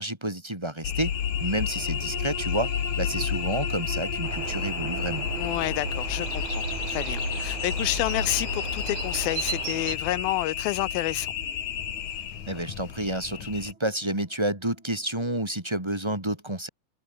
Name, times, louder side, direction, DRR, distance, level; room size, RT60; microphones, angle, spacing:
voice 1, 0.0-2.7 3.0-5.3 12.5-16.7, right 1 dB, 10° right, 2.5 m, -30 dB
sound 1, 0.8-13.7, left 9 dB, 60° left, 3.2 m, -31 dB
sound 2, 0.9-15.6 16.0-16.1, right 6 dB, 35° right, 2.9 m, -43 dB
sound 3, 4.2-10.0, right 10 dB, 60° right, 2.9 m, -35 dB
voice 2, 5.4-11.3, left 18 dB, 85° left, 2.5 m, -29 dB
open air
omnidirectional pair, 4.3 m